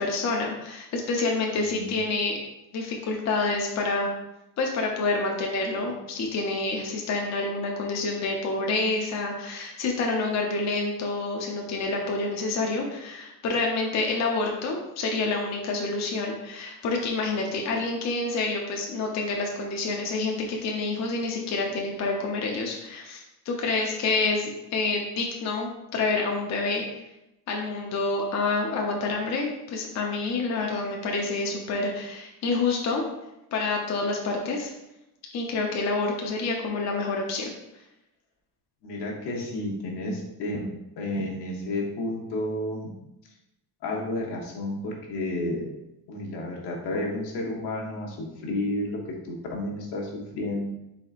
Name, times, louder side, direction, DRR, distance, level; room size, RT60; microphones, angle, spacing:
voice 1, 0.0-2.4 2.7-4.1 4.6-26.8 27.5-33.0 33.5-34.7 35.3-37.5, left 3 dB, 45° left, 0 dB, 0.6 m, -28 dB
voice 2, 1.6-1.9 38.8-40.6 41.0-42.9 43.8-45.6 46.1-49.0 49.2-50.7, left 1 dB, 80° left, -1 dB, 1.1 m, -31 dB
4.2 x 4.0 x 2.4 m, 0.90 s
cardioid pair, 140°, 40 cm